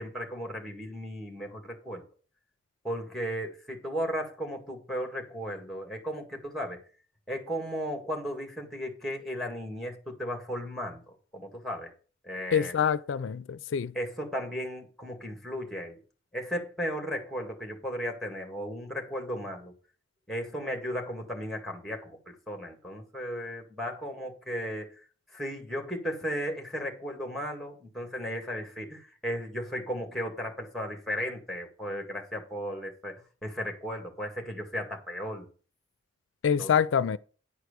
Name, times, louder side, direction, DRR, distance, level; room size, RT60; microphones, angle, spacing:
voice 1, 0.0-2.0 2.8-6.8 7.3-11.9 12.2-12.8 13.9-16.0 16.3-19.7 20.3-24.9 25.3-35.5 36.6-36.7, equal, ahead, 1.9 m, -35 dB
voice 2, 12.5-13.9 36.4-37.2, left 7 dB, 80° left, 0.4 m, -26 dB
9.9 x 4.7 x 6.7 m
head